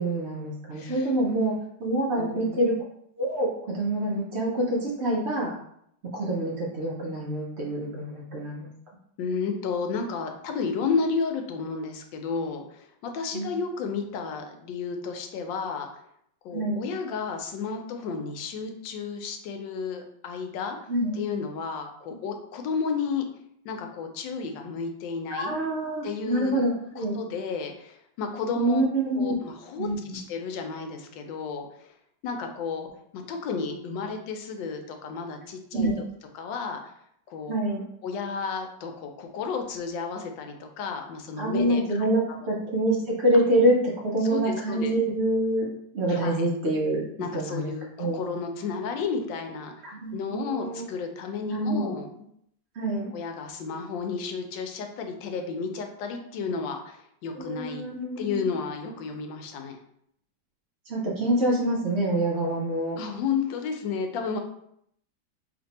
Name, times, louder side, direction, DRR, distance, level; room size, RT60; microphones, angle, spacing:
voice 1, 0.0-1.5 1.8-2.8 3.2-5.5 6.1-8.7 13.3-13.5 16.5-16.8 20.9-21.2 25.3-27.2 28.5-29.3 29.8-30.2 35.7-35.9 37.5-37.8 41.4-42.2 42.5-45.7 45.9-47.0 47.3-47.7 48.0-48.2 49.8-50.8 51.5-51.9 52.7-53.1 57.3-58.4 60.9-63.0, right 1 dB, 70° right, -3 dB, 0.6 m, -26 dB
voice 2, 0.7-1.1 2.2-2.6 9.2-16.0 16.4-20.8 21.1-23.3 23.6-25.5 26.0-26.6 27.0-28.8 29.2-31.9 32.2-32.9 33.1-35.9 36.3-36.8 37.3-37.6 38.0-42.1 42.4-42.6 44.3-44.9 46.1-46.4 47.2-49.7 50.1-52.1 53.1-57.8 58.2-59.8 63.0-64.4, left 5 dB, 85° left, 4 dB, 1.3 m, -32 dB
3.1 x 2.6 x 4.0 m, 0.72 s
omnidirectional pair, 2.0 m